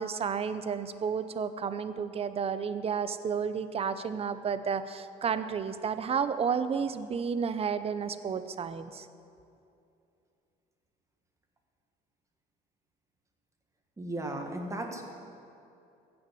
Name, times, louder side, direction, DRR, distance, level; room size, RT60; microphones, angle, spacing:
voice 1, 0.0-9.1, right 6 dB, 35° right, 12 dB, 0.6 m, -31 dB
voice 2, 14.0-15.0, right 1 dB, 20° right, 3 dB, 1.6 m, -35 dB
15.5 x 6.1 x 7.6 m, 2.6 s
cardioid pair, 110°, 17 cm